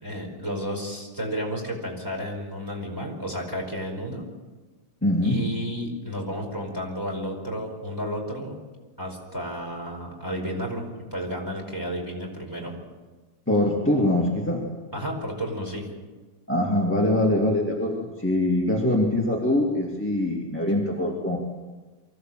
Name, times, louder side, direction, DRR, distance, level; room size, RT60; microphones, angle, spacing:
voice 1, 0.0-4.3 5.2-8.6 9.0-12.7 14.9-15.9, equal, 10° right, -1 dB, 4.7 m, -32 dB
voice 2, 5.0-5.4 13.5-14.6 16.5-21.4, left 1 dB, 5° left, -1 dB, 2.3 m, -23 dB
24.0 x 15.5 x 7.7 m, 1.2 s
omnidirectional pair, 1.8 m